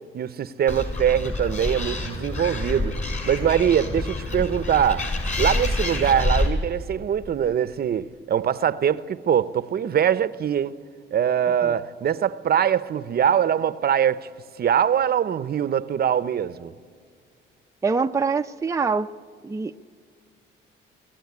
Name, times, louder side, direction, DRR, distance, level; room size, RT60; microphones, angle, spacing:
voice 1, 0.1-3.0 3.2-10.8 11.1-14.3 14.6-16.7, right 9 dB, 50° right, 0.7 m, -23 dB
Animal, 0.7-6.5, left 2 dB, 35° left, 5.9 m, -27 dB
voice 2, 17.8-19.1 19.4-19.8, right 4 dB, 15° right, 0.5 m, -24 dB
23.5 x 15.5 x 9.6 m
cardioid pair, 90°, 20 cm